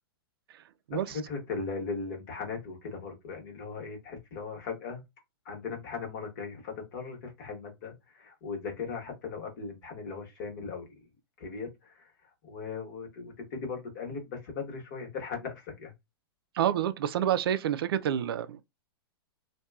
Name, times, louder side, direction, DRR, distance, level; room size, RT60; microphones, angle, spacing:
voice 1, 0.9-5.0 5.4-10.9 11.4-15.9, left 4 dB, 50° left, 1.1 m, -38 dB
voice 2, 16.5-18.6, right 10 dB, 65° right, 0.4 m, -28 dB
2.8 x 2.2 x 2.3 m
hypercardioid pair, 125°, 13 cm